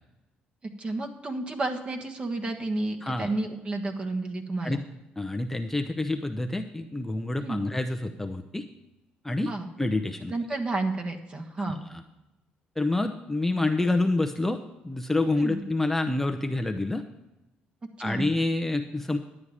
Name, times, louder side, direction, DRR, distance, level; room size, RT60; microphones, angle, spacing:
voice 1, 0.6-4.8 7.4-7.6 9.4-9.7 10.3-11.8 15.4-15.6 18.0-18.3, right 2 dB, 30° right, 4 dB, 1.4 m, -31 dB
voice 2, 5.2-8.6 9.2-9.5 9.8-10.3 11.7-12.0 12.8-14.6 14.8-17.0 18.0-19.2, left 2 dB, 10° left, 4 dB, 0.7 m, -27 dB
11.0 x 8.7 x 4.9 m, 0.99 s
cardioid pair, 95°, 4 cm